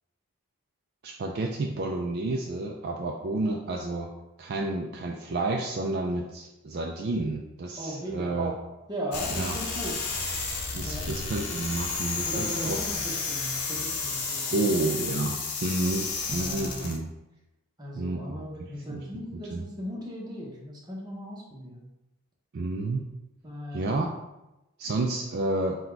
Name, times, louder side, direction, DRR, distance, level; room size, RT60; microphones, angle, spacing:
voice 1, 1.0-4.1 4.4-8.5 9.3-9.6 10.7-12.8 14.5-17.1 17.9-19.1 19.5-19.7 22.5-23.1 23.7-24.1 24.8-25.8, right 2 dB, 45° right, 1 dB, 0.3 m, -30 dB
voice 2, 7.8-8.4 8.9-10.0 10.8-11.1 12.2-14.6 16.3-16.9 17.8-21.9 23.4-24.1, equal, 20° right, -3 dB, 0.7 m, -37 dB
sound 1, 9.1-17.0, left 4 dB, 90° left, 0.7 m, -32 dB
4.0 x 2.2 x 4.4 m, 0.96 s
head